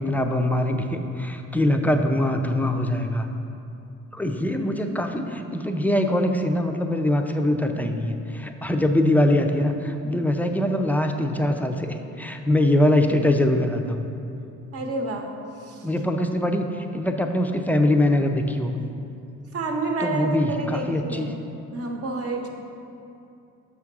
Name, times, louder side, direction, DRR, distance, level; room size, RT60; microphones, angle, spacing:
voice 1, 0.0-3.3 4.1-14.1 15.8-18.8 20.0-21.3, left 1 dB, 5° left, 5 dB, 0.4 m, -23 dB
voice 2, 14.7-15.3 15.7-15.8 19.5-21.4 21.7-22.5, right 3 dB, 50° right, 3 dB, 0.8 m, -28 dB
6.0 x 3.6 x 6.0 m, 2.7 s
cardioid pair, 90°, 30 cm